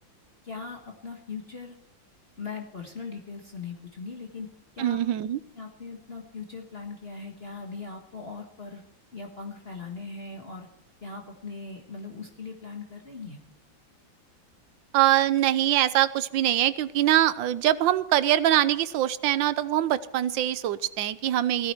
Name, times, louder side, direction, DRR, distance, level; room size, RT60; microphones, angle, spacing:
voice 1, 0.4-1.8 2.4-4.5 4.7-5.0 5.5-8.8 9.1-10.7 11.0-13.4, left 4 dB, 35° left, 1 dB, 1.6 m, -39 dB
voice 2, 4.8-5.4 14.9-21.7, right 12 dB, 80° right, 15 dB, 1.5 m, -23 dB
16.5 x 14.0 x 4.6 m, 0.78 s
omnidirectional pair, 2.1 m